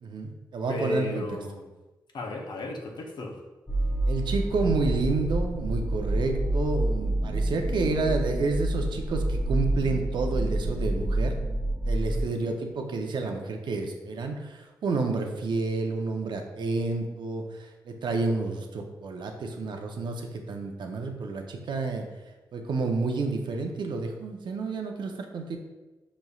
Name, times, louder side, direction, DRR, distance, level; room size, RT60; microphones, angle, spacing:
voice 1, 0.0-1.2 4.1-11.3 11.9-17.4 17.9-22.1 22.5-25.6, right 3 dB, 75° right, 4 dB, 0.6 m, -30 dB
voice 2, 0.7-1.7 2.1-3.4 12.1-12.5, left 2 dB, 65° left, 1 dB, 0.7 m, -34 dB
sound 1, 3.7-12.2, right 1 dB, 15° left, 0.7 m, -28 dB
5.2 x 3.0 x 2.3 m, 1.1 s
cardioid pair, 65°, 8 cm